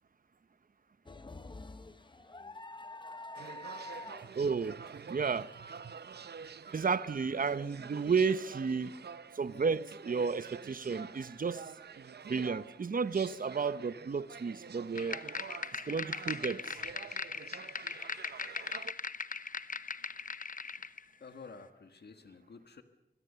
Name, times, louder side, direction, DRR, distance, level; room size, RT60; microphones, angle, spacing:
sound 1, 1.1-7.2 7.7-7.8 8.9-9.2, left 2 dB, 30° left, 0.9 m, -48 dB
sound 2, 3.3-18.9, right 6 dB, 85° right, 0.8 m, -48 dB
voice 1, 3.8-4.4 21.2-22.8, left 4 dB, 90° left, 1.6 m, -52 dB
voice 2, 4.4-5.5 5.8-5.9 6.7-8.9 9.3-11.7 12.3-15.2 15.7-16.8, right 5 dB, 55° right, 0.8 m, -32 dB
sound 3, 15.0-21.0, left 5 dB, 55° left, 0.9 m, -39 dB
25.5 x 22.0 x 6.8 m
wide cardioid pair, 105°, 17 cm